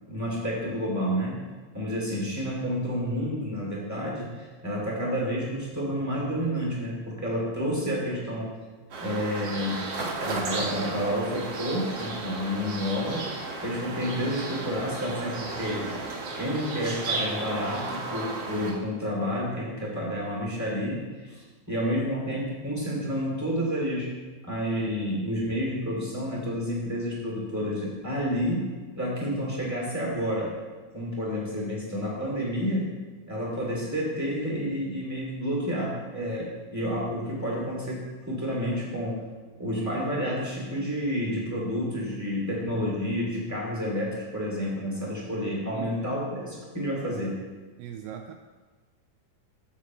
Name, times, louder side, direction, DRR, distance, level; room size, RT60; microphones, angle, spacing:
voice 1, 0.1-1.4 1.7-8.5 9.0-9.8 10.2-13.3 13.6-15.9 16.3-24.1 24.5-30.5 30.9-32.9 33.3-39.2 39.6-47.4, equal, 5° right, -5 dB, 1.8 m, -30 dB
sound 1, 8.9-18.7, right 3 dB, 50° right, 2.0 m, -34 dB
voice 2, 45.7-46.1 47.8-48.3, right 9 dB, 80° right, 5 dB, 2.4 m, -39 dB
17.0 x 7.3 x 3.1 m, 1.3 s
omnidirectional pair, 4.9 m